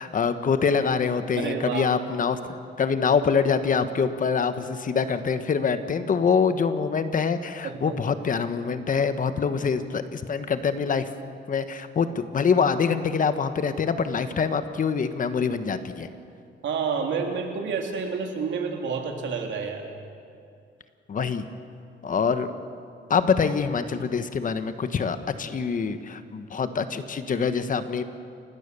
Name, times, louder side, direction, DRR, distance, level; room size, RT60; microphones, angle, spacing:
voice 1, 0.0-2.4 2.8-11.1 11.5-16.1 21.1-21.4 22.0-22.5 23.1-28.0, left 6 dB, 45° left, 10 dB, 1.3 m, -25 dB
voice 2, 1.4-1.8 7.6-7.9 16.6-19.8, right 5 dB, 75° right, 2 dB, 3.2 m, -29 dB
29.5 x 17.0 x 6.9 m, 2.4 s
cardioid pair, 120°, 20 cm